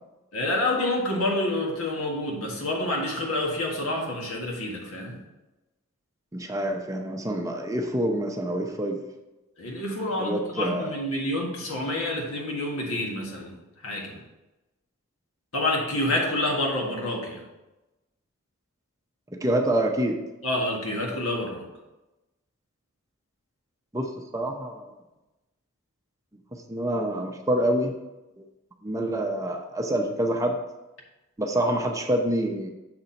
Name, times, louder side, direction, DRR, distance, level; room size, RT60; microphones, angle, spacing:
voice 1, 0.3-5.2 9.6-13.6 13.8-14.2 15.5-17.4 20.4-21.6, left 1 dB, 85° left, -1 dB, 1.6 m, -28 dB
voice 2, 6.3-9.0 10.1-11.0 19.3-20.2 23.9-24.9 26.7-27.9 28.4-28.5 28.8-30.6 31.4-32.7, right 1 dB, 15° right, 3 dB, 0.6 m, -27 dB
6.7 x 4.3 x 5.2 m, 1.0 s
head